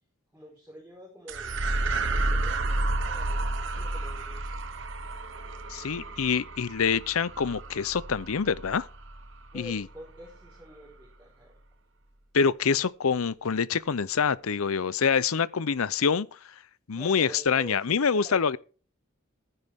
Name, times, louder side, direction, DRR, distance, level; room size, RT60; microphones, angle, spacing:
voice 1, 0.3-1.6 2.0-4.6 9.5-11.5 16.9-18.6, equal, 10° right, 4.6 m, -47 dB
sound 1, 1.3-9.9, right 2 dB, 60° right, 1.1 m, -31 dB
voice 2, 5.7-8.9 9.5-9.8 12.3-16.3 16.9-18.6, left 6 dB, 85° left, 0.6 m, -26 dB
15.0 x 10.0 x 3.6 m
head